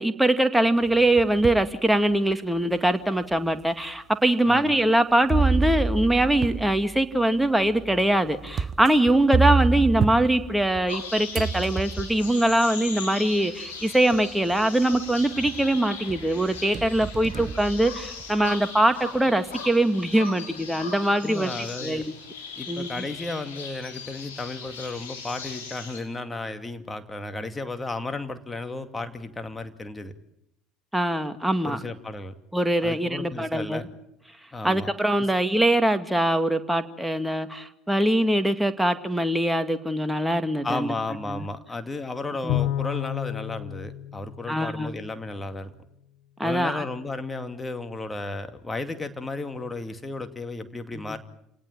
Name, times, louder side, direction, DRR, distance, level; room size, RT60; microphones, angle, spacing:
voice 1, 0.0-21.5 21.8-22.0 22.7-23.0 30.9-31.8 32.5-33.8 34.6-40.9 41.3-41.4 42.4-42.6 44.5-45.0 46.4-46.9 51.1-51.2, right 1 dB, 5° right, 9 dB, 2.2 m, -23 dB
sound 1, 0.8-1.7 2.3-2.4 3.3-3.4 5.3-11.0 11.3-12.3 13.5-13.6 14.1-14.5 14.9-15.7 16.1-18.5, right 4 dB, 35° right, 1.2 m, -28 dB
sound 2, 10.9-26.0, left 5 dB, 75° left, 5.6 m, -39 dB
voice 2, 21.2-22.0 22.6-30.1 31.6-32.3 32.8-33.9 34.5-34.9 35.2-35.3 40.6-45.7 46.4-51.2, left 2 dB, 15° left, 8 dB, 2.4 m, -34 dB
Bowed string instrument, 42.5-45.1, left 13 dB, 55° left, 1.1 m, -30 dB
28.5 x 19.0 x 8.9 m, 0.79 s
figure-of-eight pair, 65°, 0 cm